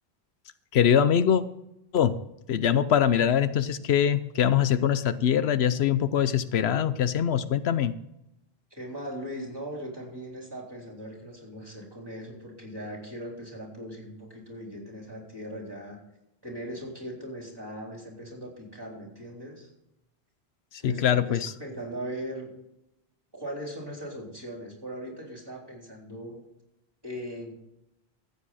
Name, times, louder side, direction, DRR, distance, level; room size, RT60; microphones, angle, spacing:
voice 1, 0.7-1.4 1.9-2.2 2.5-7.9 20.8-21.5, left 9 dB, 85° left, 13 dB, 0.9 m, -23 dB
voice 2, 8.8-16.0 16.4-19.7 20.8-22.5 23.3-26.4 27.0-27.6, equal, 20° right, -1 dB, 3.8 m, -39 dB
14.5 x 8.4 x 4.2 m, 0.86 s
omnidirectional pair, 1.0 m